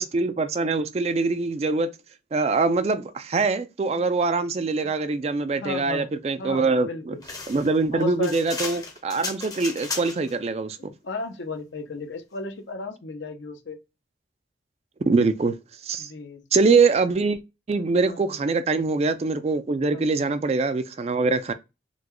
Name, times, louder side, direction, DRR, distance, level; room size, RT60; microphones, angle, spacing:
voice 1, 0.0-1.9 2.3-7.2 7.5-10.9 15.1-15.6 15.8-16.1 16.5-17.4 17.7-21.5, right 4 dB, 35° right, 0.3 m, -23 dB
voice 2, 5.6-6.1 6.4-7.2 7.9-8.4 10.8-13.8 16.0-16.4 18.1-18.4 19.9-20.1, left 3 dB, 85° left, 0.7 m, -35 dB
sound 1, 7.2-10.4, left 4 dB, 20° left, 0.6 m, -34 dB
3.8 x 2.2 x 3.0 m
head